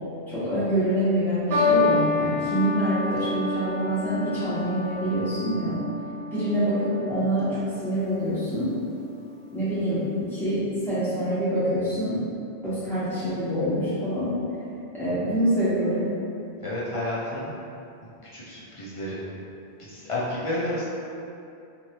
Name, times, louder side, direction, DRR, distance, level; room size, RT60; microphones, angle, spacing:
voice 1, 0.3-5.8 6.3-8.7 9.5-12.2 12.6-14.3 14.9-16.1, right 1 dB, ahead, -14 dB, 1.1 m, -26 dB
sound 1, 1.5-8.0 8.9-9.3, left 3 dB, 70° right, 0.9 m, -28 dB
voice 2, 16.6-17.5 18.3-19.2 19.8-20.9, left 1 dB, 40° left, -8 dB, 0.5 m, -30 dB
3.1 x 2.5 x 2.8 m, 2.6 s
omnidirectional pair, 1.1 m